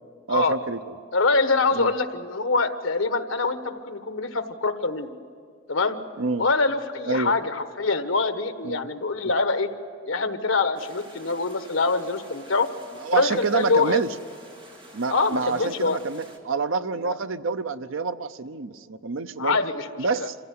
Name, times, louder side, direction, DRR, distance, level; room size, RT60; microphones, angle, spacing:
voice 1, 0.3-0.8 1.7-1.9 6.2-6.5 7.1-7.4 8.6-8.9 13.0-14.1 14.9-19.6 20.0-20.4, right 4 dB, 85° right, 11 dB, 0.8 m, -27 dB
voice 2, 1.1-5.1 5.7-6.0 6.4-9.7 10.1-12.7 13.1-14.0 15.1-16.0 17.0-17.2 19.4-19.9 20.1-20.3, left 3 dB, 85° left, 9 dB, 1.3 m, -24 dB
sound 1, 10.7-16.4, right 1 dB, 25° right, 2.2 m, -48 dB
26.5 x 16.0 x 9.5 m, 2.1 s
head